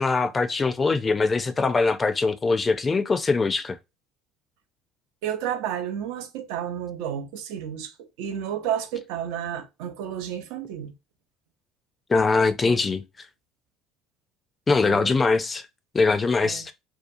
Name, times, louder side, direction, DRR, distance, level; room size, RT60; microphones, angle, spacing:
voice 1, 0.0-3.8 12.1-13.0 14.7-15.6 15.9-16.7, left 4 dB, 25° left, 0.4 m, -22 dB
voice 2, 5.2-10.9 12.6-12.8 14.7-15.1 16.4-16.6, right 9 dB, 75° right, 0.5 m, -31 dB
2.8 x 2.2 x 2.5 m
supercardioid pair, 80°, 0 cm